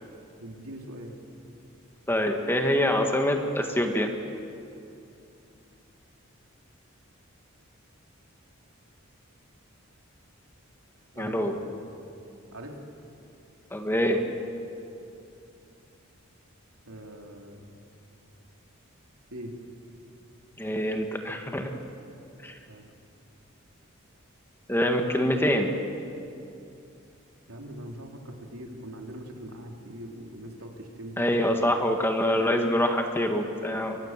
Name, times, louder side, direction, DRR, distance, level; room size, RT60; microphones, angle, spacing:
voice 1, 0.4-1.2 11.1-11.6 12.5-12.8 16.9-17.6 19.3-19.5 22.7-22.9 27.5-31.5, right 1 dB, 90° right, 1 dB, 3.5 m, -42 dB
voice 2, 2.1-4.1 11.2-11.6 13.7-14.2 20.6-21.7 22.4-22.6 24.7-25.7 31.2-34.0, left 1 dB, 10° left, 4 dB, 1.8 m, -25 dB
30.0 x 23.5 x 7.5 m, 2.6 s
head